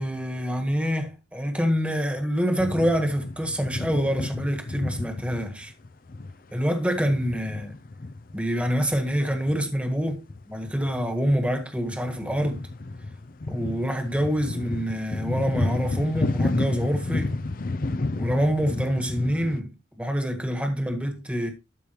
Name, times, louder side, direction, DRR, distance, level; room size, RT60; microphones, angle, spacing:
voice 1, 0.0-5.7 6.5-7.7 8.3-12.7 13.5-17.3 18.2-21.5, equal, 5° right, 1.6 m, -26 dB
sound 1, 2.6-9.7 10.0-11.4 11.8-19.6, left 2 dB, 45° left, 0.6 m, -31 dB
13.0 x 5.3 x 3.0 m
head